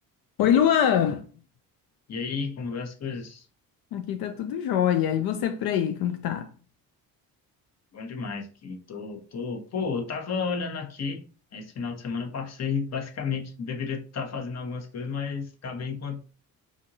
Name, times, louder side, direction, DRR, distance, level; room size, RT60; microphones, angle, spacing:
voice 1, 0.4-1.3 3.9-6.5, left 9 dB, 85° left, 0.5 m, -24 dB
voice 2, 2.1-3.4 7.9-11.2 11.5-16.2, left 5 dB, 45° left, 1.0 m, -32 dB
4.9 x 2.6 x 2.7 m
cardioid pair, 100°, 36 cm